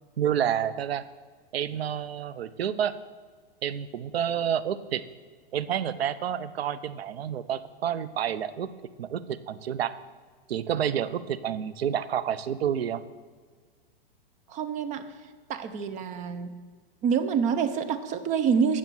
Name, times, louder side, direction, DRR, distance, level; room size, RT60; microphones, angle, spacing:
voice 1, 0.2-1.1 1.5-3.0 3.6-5.0 5.5-8.7 9.0-9.9 10.5-13.0, right 9 dB, 80° right, 14 dB, 0.7 m, -29 dB
voice 2, 14.5-15.0 15.5-16.5 17.0-18.8, right 6 dB, 25° right, 9 dB, 0.7 m, -26 dB
9.9 x 6.8 x 7.6 m, 1.5 s
hypercardioid pair, 135°, 30 cm